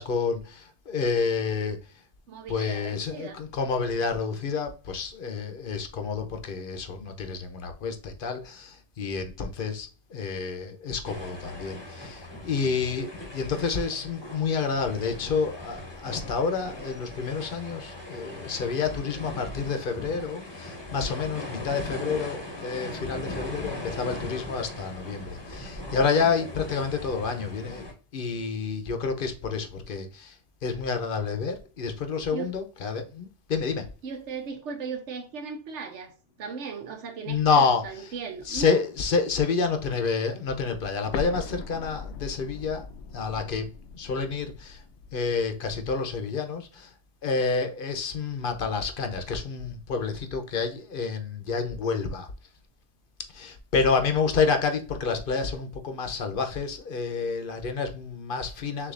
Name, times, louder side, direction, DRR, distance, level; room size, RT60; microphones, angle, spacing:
voice 1, 0.0-1.8 2.5-30.4 30.6-33.9 37.3-37.8 38.5-42.9 43.1-43.7 43.9-44.8 45.1-46.9 47.2-52.3 53.3-58.9, left 5 dB, 50° left, 0.9 m, -29 dB
voice 2, 2.3-3.4 32.3-32.5 34.0-36.1 36.4-38.8, right 5 dB, 80° right, 1.2 m, -37 dB
sound 1, 11.0-27.9, left 2 dB, 25° left, 1.0 m, -39 dB
Explosion, 41.1-45.9, left 4 dB, 80° left, 0.9 m, -40 dB
6.7 x 2.8 x 2.5 m
omnidirectional pair, 1.2 m